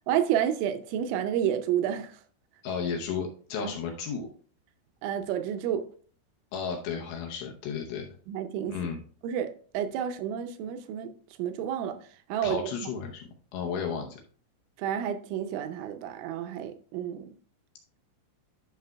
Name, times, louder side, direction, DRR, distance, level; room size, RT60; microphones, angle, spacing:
voice 1, 0.1-2.2 5.0-5.9 8.3-8.8 9.2-11.1 11.4-12.0 12.3-12.6 14.8-17.3, right 9 dB, 80° right, 2.8 m, -30 dB
voice 2, 2.6-4.3 6.5-8.1 8.7-9.0 12.4-14.2, left 6 dB, 80° left, 2.5 m, -33 dB
11.5 x 5.9 x 2.3 m
omnidirectional pair, 5.8 m